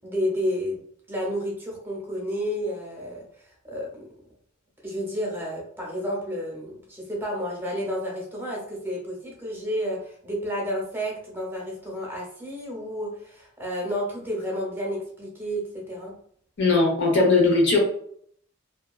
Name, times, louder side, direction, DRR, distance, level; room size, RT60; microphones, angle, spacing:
voice 1, 0.0-0.8 1.1-4.1 4.8-16.1, equal, 10° right, -3 dB, 0.7 m, -31 dB
voice 2, 16.6-17.8, left 3 dB, 60° left, -1 dB, 0.8 m, -19 dB
2.8 x 2.3 x 2.3 m, 0.64 s
head